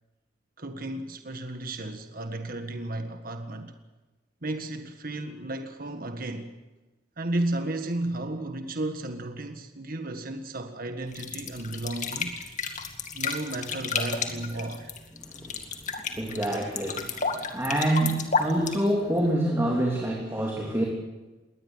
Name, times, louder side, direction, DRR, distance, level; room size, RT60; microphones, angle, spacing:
voice 1, 0.6-3.7 4.4-6.5 7.2-12.4 13.1-14.9, right 2 dB, 50° right, 1.7 m, -33 dB
sound 1, 11.1-19.3, left 5 dB, 40° left, 2.2 m, -32 dB
voice 2, 16.0-20.8, right 1 dB, 15° right, 3.2 m, -27 dB
22.0 x 18.5 x 8.1 m
head